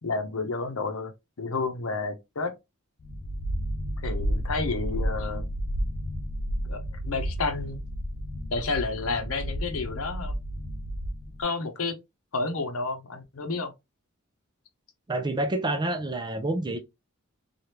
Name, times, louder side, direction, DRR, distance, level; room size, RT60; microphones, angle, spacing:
voice 1, 0.0-1.1 1.4-2.5 4.0-5.4 6.7-7.8 8.5-10.4 11.4-11.9 12.3-13.7, left 3 dB, 75° left, 0.8 m, -30 dB
sound 1, 3.0-11.4, equal, 40° left, 0.4 m, -32 dB
voice 2, 15.1-16.8, right 1 dB, 20° right, 0.5 m, -28 dB
3.3 x 2.4 x 2.8 m
head